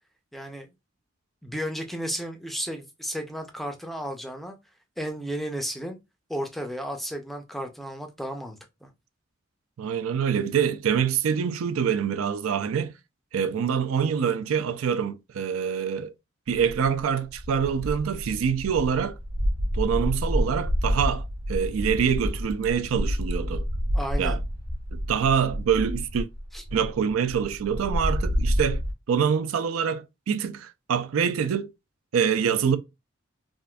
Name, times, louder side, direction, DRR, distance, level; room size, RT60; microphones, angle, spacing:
voice 1, 0.3-0.7 1.4-4.6 5.0-6.0 6.3-8.9 23.9-24.4 26.5-26.6, equal, ahead, 0.4 m, -33 dB
voice 2, 9.8-12.9 13.3-16.1 16.5-19.2 19.7-23.6 24.2-24.4 24.9-26.3 26.7-28.8 29.1-31.7 32.1-32.8, right 7 dB, 85° right, 0.4 m, -25 dB
sound 1, 16.5-17.0 17.3-28.9, equal, 45° right, 1.2 m, -29 dB
3.6 x 2.5 x 2.2 m
head